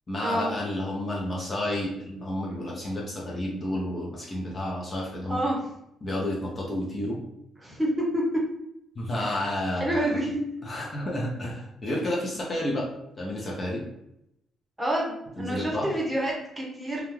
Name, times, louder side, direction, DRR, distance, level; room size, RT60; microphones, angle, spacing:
voice 1, 0.1-5.4 6.0-7.2 9.0-10.2 10.6-12.9 13.2-13.8 15.4-15.9, left 1 dB, 35° left, -3 dB, 0.7 m, -30 dB
voice 2, 5.3-5.6 7.6-8.2 9.2-9.4 9.7-10.4 10.7-10.8 14.8-17.0, right 1 dB, 10° right, -3 dB, 0.9 m, -28 dB
2.4 x 2.2 x 3.1 m, 0.80 s
cardioid pair, 90°, 0 cm